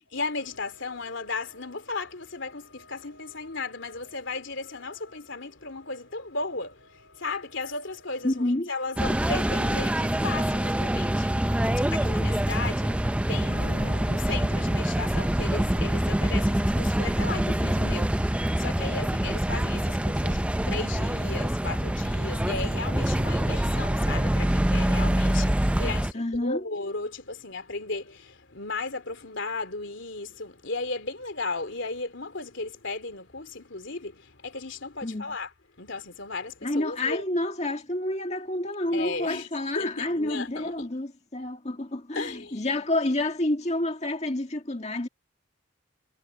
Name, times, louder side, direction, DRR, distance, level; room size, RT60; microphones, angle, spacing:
voice 1, 0.1-35.5 35.8-37.2 38.9-39.5 39.7-40.9 42.1-42.7, left 3 dB, 60° left, 3.1 m, -35 dB
voice 2, 8.2-8.7 26.1-26.6 35.0-35.3 36.6-45.1, left 1 dB, 30° left, 2.0 m, -29 dB
sound 1, 9.0-26.1, right 1 dB, 5° right, 0.4 m, -25 dB
head